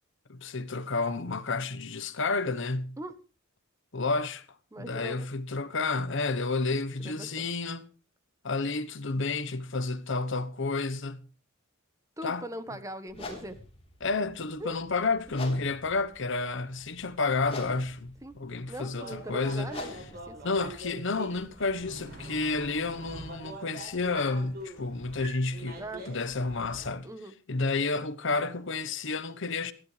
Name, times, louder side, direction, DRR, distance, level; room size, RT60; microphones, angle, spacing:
voice 1, 0.3-3.0 3.9-4.5 4.8-7.8 8.4-11.2 12.2-12.4 14.0-19.7 20.4-25.8 26.1-27.1 27.5-29.7, left 3 dB, 65° left, 1.1 m, -30 dB
voice 2, 4.7-5.3 7.0-7.5 12.2-13.6 14.6-14.7 18.2-18.4 18.7-20.4 25.8-26.1 27.0-27.3, right 1 dB, 15° right, 1.2 m, -40 dB
sound 1, 13.1-21.9, left 2 dB, 30° left, 3.8 m, -46 dB
sound 2, 18.9-26.9, right 1 dB, 50° right, 6.4 m, -44 dB
19.5 x 14.5 x 3.3 m
head